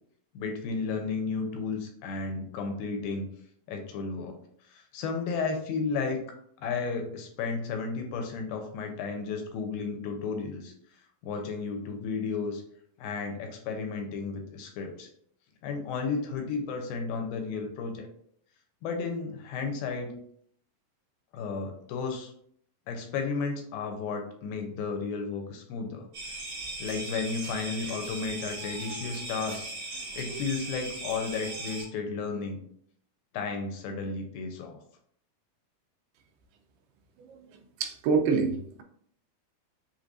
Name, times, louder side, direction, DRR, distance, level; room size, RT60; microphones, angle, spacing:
voice 1, 0.4-3.3 3.7-4.4 4.6-10.7 11.2-12.6 13.0-15.1 15.6-18.1 18.8-20.1 21.3-22.3 22.9-26.1 26.8-29.7 30.2-32.6 33.3-34.8, left 4 dB, 80° left, 4 dB, 2.4 m, -33 dB
sound 1, 26.1-31.8, right 2 dB, 60° right, 1.3 m, -38 dB
voice 2, 37.8-38.8, right 5 dB, 90° right, 5 dB, 2.6 m, -26 dB
6.6 x 3.1 x 2.5 m, 0.66 s
omnidirectional pair, 4.4 m